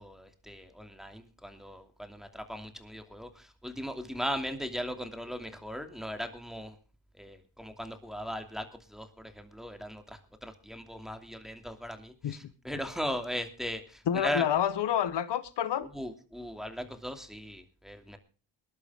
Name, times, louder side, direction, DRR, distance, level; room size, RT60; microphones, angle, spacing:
voice 1, 0.0-6.7 7.2-8.7 8.9-14.5 15.9-18.2, equal, ahead, 2.8 m, -38 dB
voice 2, 14.1-15.9, left 9 dB, 60° left, 1.3 m, -28 dB
20.5 x 12.0 x 3.7 m
cardioid pair, 80°, 47 cm